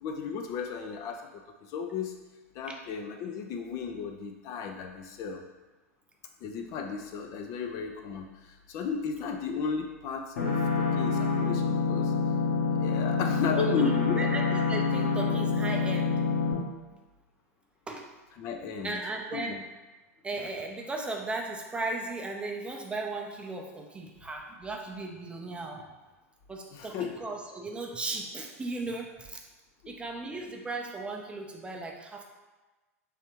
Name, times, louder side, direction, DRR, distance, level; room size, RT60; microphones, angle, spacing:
voice 1, 0.0-2.1 2.5-5.4 6.4-12.1 12.7-14.3 18.4-19.0 19.3-19.6 26.7-27.3 29.8-29.9, left 5 dB, 40° left, 4 dB, 0.4 m, -34 dB
sound 1, 10.4-16.5, left 4 dB, 65° left, 1.1 m, -27 dB
voice 2, 13.5-13.9 14.2-16.2 17.9-18.1 18.8-19.7 20.2-25.9 26.5-29.4 29.9-32.2, right 2 dB, 15° right, 1 dB, 0.5 m, -36 dB
3.4 x 3.2 x 2.9 m, 1.2 s
figure-of-eight pair, 90°, 8 cm